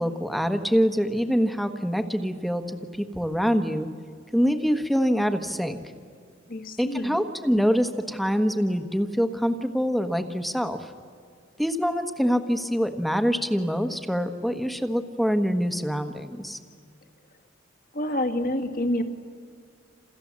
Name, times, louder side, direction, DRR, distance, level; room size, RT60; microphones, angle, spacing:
voice 1, 0.0-3.9 4.3-5.8 6.8-10.9 11.6-16.6, equal, ahead, 7 dB, 1.2 m, -25 dB
voice 2, 6.5-7.2 17.9-19.0, left 1 dB, 45° left, 7 dB, 1.8 m, -27 dB
29.0 x 27.5 x 7.5 m, 2.2 s
head